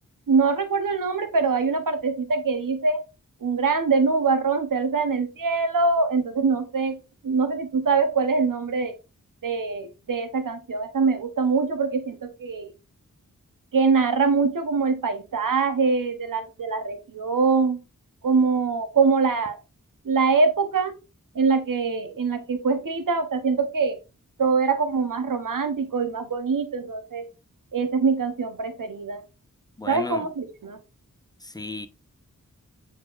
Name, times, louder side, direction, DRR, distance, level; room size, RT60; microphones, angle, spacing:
voice 1, 0.3-3.0 3.4-7.0 7.2-8.9 9.4-12.7 13.7-17.8 18.2-19.6 20.0-20.9 21.3-24.0 24.4-27.3 27.7-29.2 29.9-30.8, right 4 dB, 80° right, 1.0 m, -23 dB
voice 2, 29.8-30.3 31.4-31.9, left 2 dB, 10° left, 0.8 m, -34 dB
8.7 x 4.4 x 2.5 m
wide cardioid pair, 65°, 32 cm